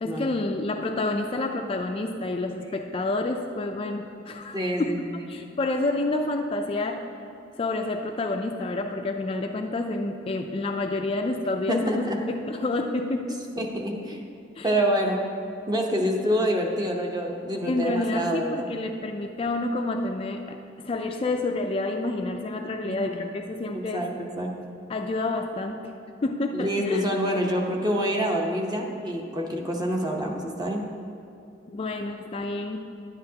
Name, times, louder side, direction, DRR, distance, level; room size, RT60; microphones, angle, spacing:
voice 1, 0.0-4.9 5.3-7.0 7.6-13.4 14.6-14.7 17.7-24.1 24.9-25.9 26.2-27.0 31.7-32.8, left 2 dB, 30° left, 4 dB, 0.3 m, -29 dB
voice 2, 4.5-5.3 11.7-12.2 13.6-14.3 14.6-15.2 15.7-18.7 22.8-23.3 23.7-24.5 26.5-30.8, equal, 20° right, 1 dB, 0.8 m, -27 dB
10.0 x 9.8 x 2.8 m, 2.6 s
head